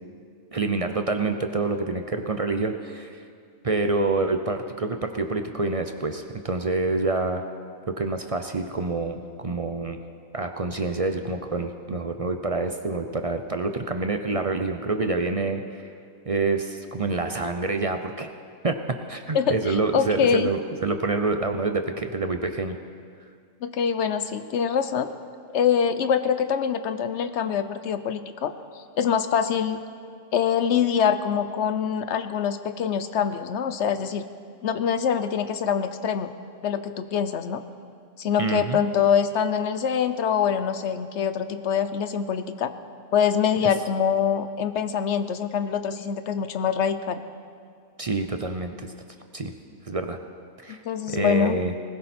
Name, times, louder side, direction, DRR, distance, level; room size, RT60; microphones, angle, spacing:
voice 1, 0.5-3.2 3.6-7.4 8.0-10.0 10.3-15.8 16.3-18.3 18.6-18.7 19.1-22.8 38.4-38.8 48.0-48.9 49.3-49.5 49.8-50.2 50.6-50.8 51.1-51.7, right 3 dB, 40° right, 6 dB, 0.5 m, -27 dB
voice 2, 19.3-20.5 23.6-25.1 25.5-28.5 29.0-29.8 30.3-34.2 34.6-36.3 36.6-37.6 38.2-42.7 43.1-47.2 50.7-51.6, left 7 dB, 60° left, 10 dB, 1.0 m, -24 dB
20.0 x 15.5 x 4.3 m, 2.3 s
omnidirectional pair, 1.5 m